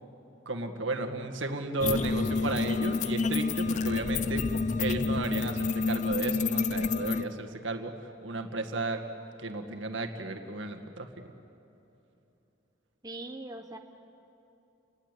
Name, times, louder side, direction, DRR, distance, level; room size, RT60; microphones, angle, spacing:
voice 1, 0.5-4.4 4.8-7.9 8.2-9.0 9.4-11.3, right 2 dB, 75° right, 4 dB, 1.9 m, -34 dB
sound 1, 1.8-7.2, left 4 dB, 40° left, 0.5 m, -29 dB
voice 2, 13.0-13.8, right 2 dB, 20° right, 4 dB, 0.9 m, -41 dB
30.0 x 20.0 x 8.3 m, 3.0 s
head